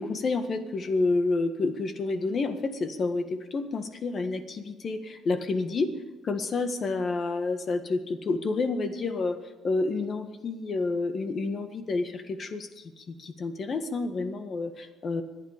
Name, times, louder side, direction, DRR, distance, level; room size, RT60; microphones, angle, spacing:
voice 1, 0.0-5.9 6.2-9.4 9.6-15.2, left 3 dB, 50° left, 8 dB, 1.6 m, -29 dB
25.0 x 9.3 x 5.1 m, 1.2 s
cardioid pair, 90°, 0 cm